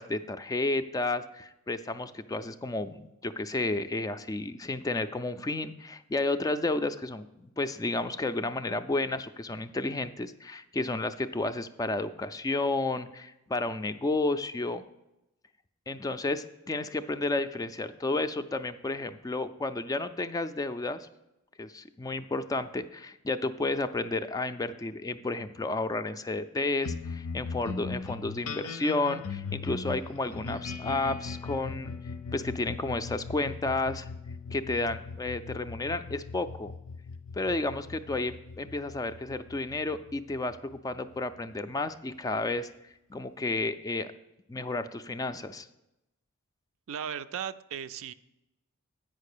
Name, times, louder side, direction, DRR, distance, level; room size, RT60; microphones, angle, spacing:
voice 1, 0.0-14.8 15.9-21.1 21.6-31.9 32.3-34.1 34.5-36.7 37.3-42.7 43.1-44.1 44.5-45.7, left 2 dB, 15° left, 10 dB, 0.3 m, -32 dB
sound 1, 26.8-41.5, left 4 dB, 85° left, 0.7 m, -40 dB
voice 2, 46.9-48.1, right 8 dB, 65° right, 13 dB, 0.4 m, -36 dB
8.9 x 5.2 x 6.6 m, 0.92 s
head